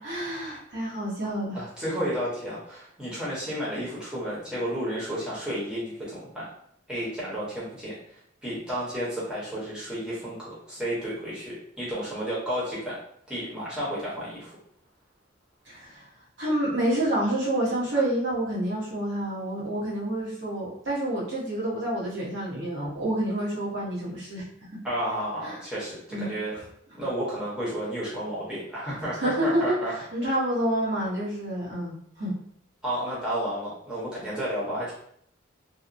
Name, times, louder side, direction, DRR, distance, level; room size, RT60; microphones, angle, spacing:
voice 1, 0.0-1.6 15.7-16.1 16.4-24.4 25.4-25.6 26.1-26.3 29.2-32.3, right 1 dB, 65° right, -6 dB, 1.0 m, -28 dB
voice 2, 1.5-6.5 6.9-7.9 8.4-13.0 13.3-14.6 17.9-18.0 24.8-26.5 26.9-29.9 32.8-34.9, equal, 5° right, -9 dB, 0.8 m, -32 dB
2.9 x 2.0 x 2.5 m, 0.68 s
head